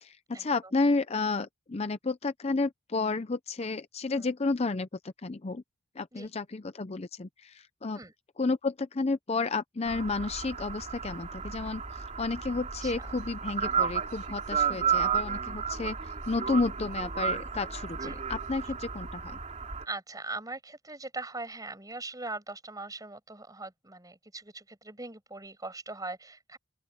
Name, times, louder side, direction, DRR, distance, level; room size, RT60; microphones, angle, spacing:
voice 1, 0.0-5.6 6.0-8.0 8.4-19.4, left 3 dB, 35° left, 0.6 m, -31 dB
sound 1, 9.9-19.8, right 7 dB, 40° right, 2.8 m, -33 dB
voice 2, 12.8-13.1 14.6-14.8 18.0-18.2 19.8-26.6, right 2 dB, 20° right, 6.7 m, -41 dB
open air
head